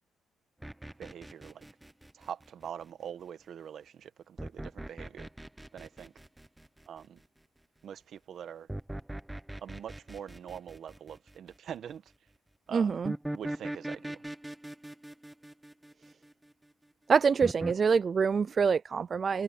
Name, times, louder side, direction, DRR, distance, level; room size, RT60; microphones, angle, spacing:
sound 1, 0.6-2.8 4.4-7.0 8.7-11.5 13.0-16.5 17.4-17.8, right 1 dB, 10° right, 1.0 m, -40 dB
voice 1, 1.0-1.6 2.1-5.3 5.7-6.1 6.9-7.2 7.8-8.7 9.6-12.1 12.7-13.0 13.3-14.2, right 9 dB, 65° right, 1.4 m, -44 dB
voice 2, 12.7-13.1 17.1-19.4, right 5 dB, 40° right, 0.4 m, -25 dB
cardioid pair, 90°, 0 cm